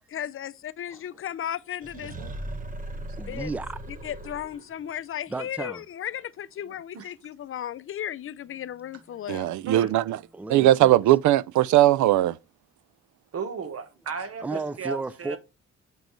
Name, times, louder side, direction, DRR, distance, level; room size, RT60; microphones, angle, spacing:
voice 1, 0.1-2.1 3.3-3.5 4.0-9.5, left 10 dB, 45° left, 0.5 m, -35 dB
sound 1, 1.8-4.8, right 1 dB, 25° right, 1.1 m, -38 dB
voice 2, 2.9-4.0 5.3-5.8 10.3-11.0 14.4-15.4, right 3 dB, 5° right, 0.5 m, -34 dB
voice 3, 9.3-10.2 10.5-12.4, right 14 dB, 75° right, 0.5 m, -19 dB
voice 4, 13.3-15.4, right 6 dB, 50° right, 1.3 m, -34 dB
7.5 x 5.2 x 3.2 m
cardioid pair, 90°, 30 cm